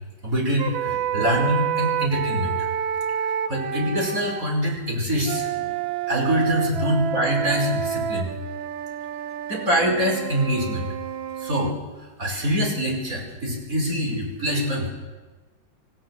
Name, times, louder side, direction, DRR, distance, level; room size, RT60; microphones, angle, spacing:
voice 1, 0.2-2.6 3.5-5.7 6.1-8.3 9.5-10.9 11.4-11.7 12.2-14.9, equal, 45° right, 1 dB, 5.7 m, -24 dB
sound 1, 0.6-4.4 5.2-11.7, right 9 dB, 80° right, 1.7 m, -28 dB
27.0 x 16.5 x 7.7 m, 1.3 s
omnidirectional pair, 2.1 m